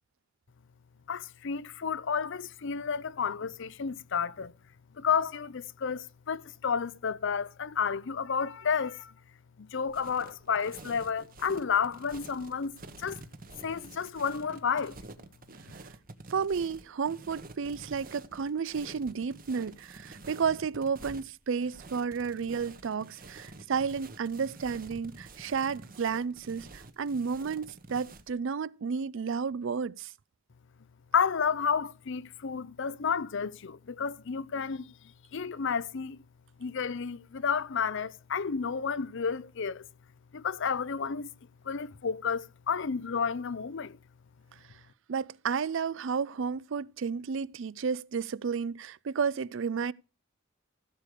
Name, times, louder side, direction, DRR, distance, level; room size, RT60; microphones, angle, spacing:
voice 1, 1.1-4.5 5.0-9.1 9.6-13.2 13.6-15.0 31.1-34.9 35.3-36.2 36.6-39.9 40.3-41.3 41.7-44.0, left 6 dB, 65° left, 0.6 m, -31 dB
sound 1, 9.9-28.3, right 2 dB, 45° right, 1.2 m, -49 dB
voice 2, 16.3-30.1 45.1-49.9, right 6 dB, 65° right, 0.4 m, -32 dB
15.5 x 6.7 x 4.9 m
head